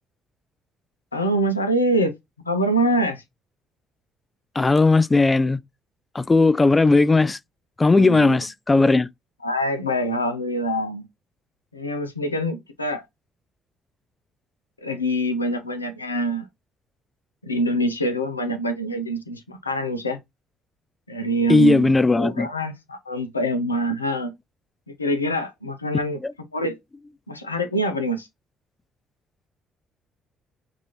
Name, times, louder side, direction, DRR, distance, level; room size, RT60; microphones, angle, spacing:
voice 1, 1.1-2.1 2.5-3.2 7.9-8.4 9.4-11.1 11.7-13.0 14.8-16.5 17.4-20.2 21.1-24.3 25.0-26.2 26.5-26.8 27.3-28.3, right 1 dB, 90° left, 0.5 m, -25 dB
voice 2, 4.6-5.6 6.1-7.4 7.8-9.1 21.5-22.5, left 3 dB, 25° left, 0.4 m, -17 dB
6.0 x 2.6 x 2.9 m
figure-of-eight pair, 45°, 0 cm